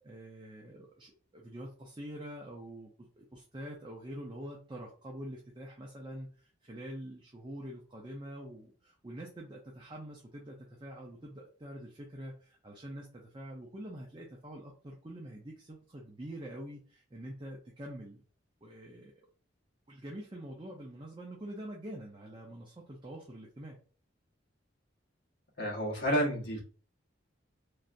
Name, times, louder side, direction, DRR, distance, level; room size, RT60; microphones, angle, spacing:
voice 1, 0.0-18.2 18.6-19.1 19.9-23.8, right 1 dB, 25° right, -1 dB, 0.5 m, -45 dB
voice 2, 25.6-26.6, equal, 60° left, -2 dB, 1.0 m, -30 dB
3.2 x 2.6 x 2.4 m, 0.40 s
head